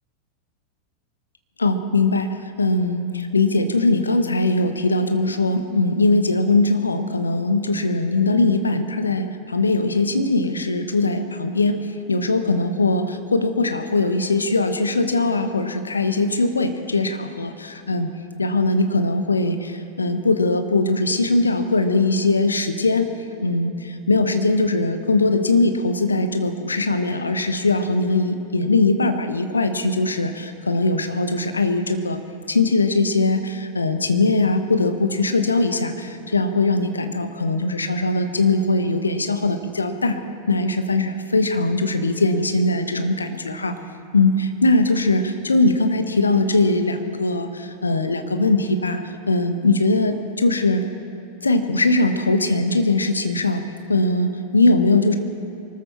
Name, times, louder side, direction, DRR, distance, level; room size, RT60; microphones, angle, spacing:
voice 1, 1.6-18.1 18.4-23.1 23.4-32.2 32.5-40.2 40.5-43.8 44.1-50.8 51.4-53.6 53.9-55.2, left 2 dB, 75° left, 8 dB, 1.1 m, -20 dB
24.0 x 13.5 x 4.4 m, 2.8 s
figure-of-eight pair, 90°, 0 cm